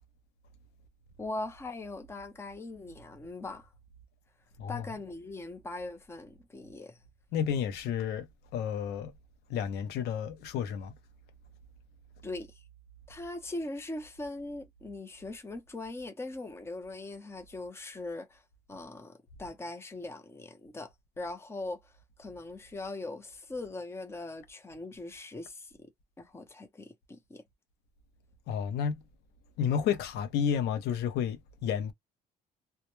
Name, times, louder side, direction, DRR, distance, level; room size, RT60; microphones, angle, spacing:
voice 1, 1.2-3.7 4.7-7.0 12.2-12.6 13.1-18.4 18.7-21.9 22.2-25.7 26.2-27.4, left 2 dB, 15° left, 0.6 m, -41 dB
voice 2, 7.3-8.3 8.5-9.1 9.5-10.9 28.5-28.9 29.6-31.9, left 8 dB, 80° left, 0.6 m, -31 dB
2.2 x 2.1 x 3.0 m
cardioid pair, 110°, 17 cm